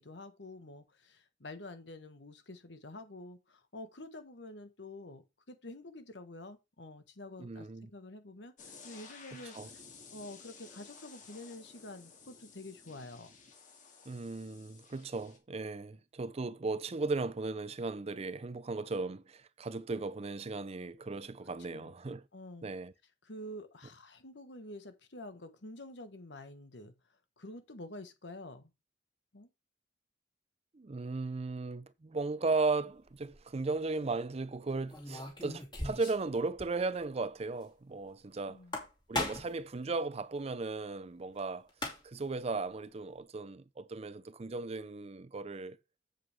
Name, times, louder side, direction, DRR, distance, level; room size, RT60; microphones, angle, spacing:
voice 1, 0.0-9.5 10.1-13.3 21.7-21.9 22.3-22.7 23.2-26.9 27.4-28.7 29.3-29.5 38.5-38.8, left 1 dB, 75° left, 1.4 m, -48 dB
voice 2, 7.4-7.9 9.5-9.7 14.1-22.2 22.6-22.9 30.7-38.6 39.1-41.7 42.0-45.8, right 3 dB, 35° right, 0.5 m, -36 dB
sound 1, 8.6-15.4, left 5 dB, 45° left, 2.2 m, -54 dB
sound 2, 33.1-33.4 34.9-36.3 36.6-36.7 37.0-37.1 38.5-39.6 41.4-41.5 41.7-42.3, left 1 dB, 25° left, 2.7 m, -38 dB
7.9 x 7.5 x 3.5 m
head